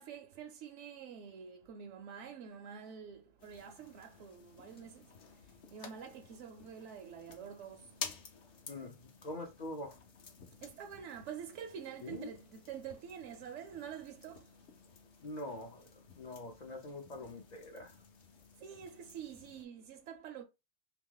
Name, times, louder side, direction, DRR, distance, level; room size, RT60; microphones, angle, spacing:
voice 1, 0.0-5.1 5.7-7.9 10.6-14.5 17.1-17.3 18.6-20.4, right 8 dB, 70° right, 0.8 m, -47 dB
sound 1, 3.4-19.7, left 6 dB, 65° left, 1.0 m, -52 dB
voice 2, 8.7-10.0 12.0-12.3 15.2-17.9, left 1 dB, 45° left, 0.6 m, -44 dB
2.9 x 2.8 x 3.7 m
omnidirectional pair, 1.3 m